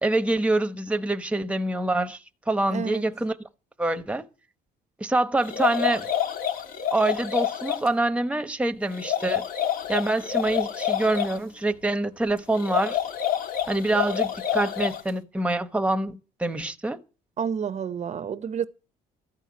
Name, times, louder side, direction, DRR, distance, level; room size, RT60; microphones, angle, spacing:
voice 1, 0.0-2.2 2.5-3.4 3.8-4.3 5.0-6.1 6.9-9.5 9.9-13.0 13.7-17.0, right 2 dB, 5° right, 1.1 m, -25 dB
voice 2, 2.7-3.1 17.4-18.7, right 7 dB, 45° right, 0.8 m, -29 dB
sound 1, 5.4-7.9 8.9-11.4 12.5-15.1, left 10 dB, 55° left, 2.1 m, -28 dB
14.0 x 5.8 x 9.5 m
cardioid pair, 110°, 17 cm